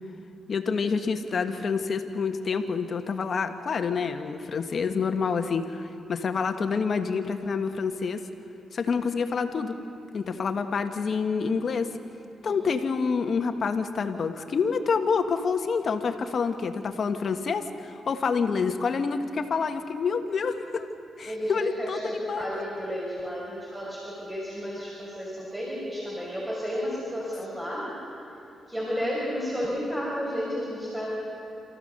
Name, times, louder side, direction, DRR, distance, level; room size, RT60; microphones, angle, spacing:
voice 1, 0.5-8.2 8.7-9.8 10.1-11.9 12.4-20.9 21.2-22.5, left 5 dB, 60° left, 7 dB, 1.5 m, -27 dB
voice 2, 21.3-28.1 28.7-31.1, equal, 10° right, -5 dB, 5.6 m, -32 dB
28.0 x 14.5 x 6.8 m, 2.8 s
cardioid pair, 60°, 0 cm